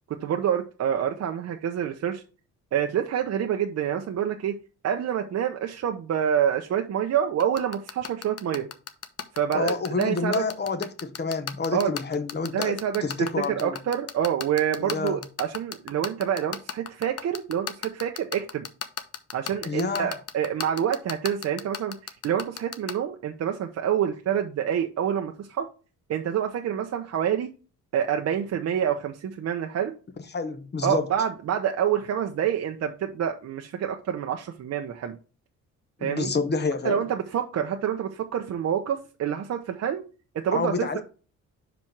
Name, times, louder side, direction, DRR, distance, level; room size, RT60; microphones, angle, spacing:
voice 1, 0.1-2.2 2.7-4.6 4.8-8.7 9.3-10.4 11.7-11.9 12.5-18.6 19.3-25.7 26.1-27.5 27.9-30.0 30.8-35.2 36.0-36.3 36.8-40.0 40.3-41.0, right 9 dB, 60° right, 0.8 m, -27 dB
sound 1, 7.4-22.9, left 8 dB, 55° left, 0.9 m, -32 dB
voice 2, 9.5-13.8 14.9-15.2 19.6-20.1 30.3-31.1 36.0-37.0 40.5-41.0, left 4 dB, 35° left, 1.1 m, -28 dB
5.2 x 4.5 x 5.9 m
cardioid pair, 90°, 30 cm